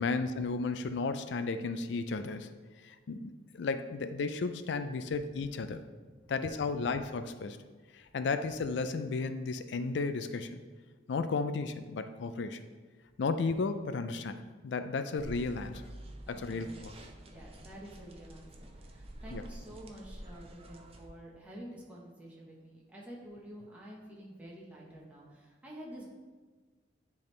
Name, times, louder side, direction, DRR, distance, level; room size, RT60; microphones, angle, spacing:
voice 1, 0.0-2.5 2.8-5.8 6.3-7.6 7.9-10.6 11.1-12.6 13.2-15.8 16.3-16.9 19.3-19.4, left 4 dB, 65° left, 10 dB, 0.4 m, -34 dB
sound 1, 15.2-21.1, right 1 dB, 35° right, 0.5 m, -48 dB
voice 2, 16.3-16.9 17.2-26.1, equal, 10° right, -5 dB, 1.1 m, -49 dB
10.0 x 3.5 x 3.2 m, 1.4 s
head